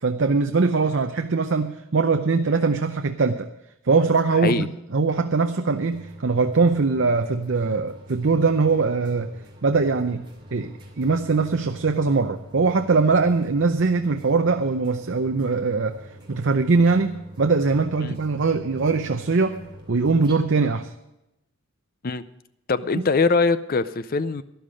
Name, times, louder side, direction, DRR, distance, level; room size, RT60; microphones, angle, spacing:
voice 1, 0.0-3.5 3.8-9.3 9.6-10.2 10.5-16.0 16.3-19.6 19.9-20.9 22.9-23.1, right 4 dB, 55° right, 7 dB, 0.6 m, -21 dB
sound 1, 5.9-20.4, equal, 20° right, 2.6 m, -45 dB
voice 2, 22.7-24.4, left 4 dB, 40° left, 14 dB, 0.5 m, -22 dB
12.5 x 11.5 x 5.0 m, 0.86 s
head